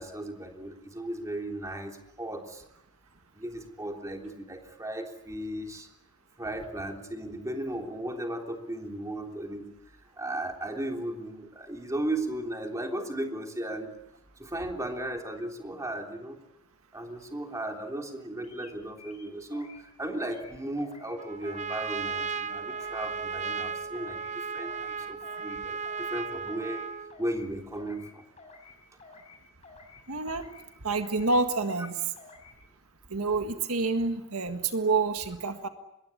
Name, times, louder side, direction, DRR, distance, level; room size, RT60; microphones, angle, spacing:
voice 1, 0.0-2.6 3.3-5.9 6.4-9.7 10.2-13.9 14.4-16.4 16.9-26.8 27.2-28.2, right 1 dB, 15° right, 2 dB, 3.4 m, -36 dB
sound 1, 18.4-18.7 19.0-19.8 20.0-20.5 20.8-21.1 21.4-21.8 22.0-22.4 22.7-23.0 23.3-23.7 23.9-24.3 24.6-24.9 25.2-25.6 25.8-26.2 26.5-26.8 27.1-27.5 27.7-28.1 28.4-28.7 29.0-29.4 29.6-30.0 30.3-30.6 30.9-31.3 31.5-31.9 32.2-32.5, left 4 dB, 30° left, 7.2 m, -51 dB
Trumpet, 21.2-27.2, right 5 dB, 30° right, 1.0 m, -35 dB
voice 2, 30.1-30.5 30.8-32.0 33.1-35.7, right 3 dB, 70° right, 7 dB, 1.8 m, -28 dB
26.0 x 22.0 x 8.6 m, 0.88 s
head